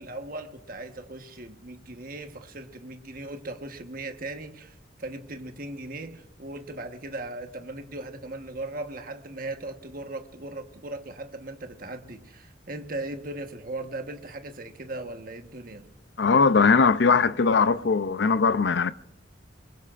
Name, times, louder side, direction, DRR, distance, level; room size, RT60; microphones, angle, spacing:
voice 1, 0.0-15.9, right 2 dB, 50° right, 1.3 m, -38 dB
voice 2, 16.2-18.9, left 5 dB, 65° left, 0.5 m, -20 dB
24.5 x 22.0 x 2.5 m
head